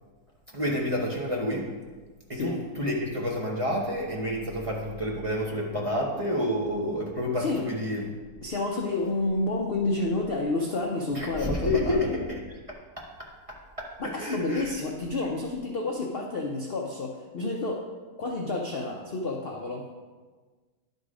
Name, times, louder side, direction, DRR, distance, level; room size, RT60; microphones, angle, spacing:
voice 1, 0.5-1.7 2.3-8.1 11.1-12.4 13.0-14.7, left 1 dB, 25° right, -3 dB, 1.0 m, -29 dB
voice 2, 8.4-12.0 14.0-17.8 18.2-19.9, left 2 dB, 50° left, 0 dB, 0.7 m, -29 dB
11.0 x 4.0 x 4.9 m, 1.4 s
omnidirectional pair, 1.7 m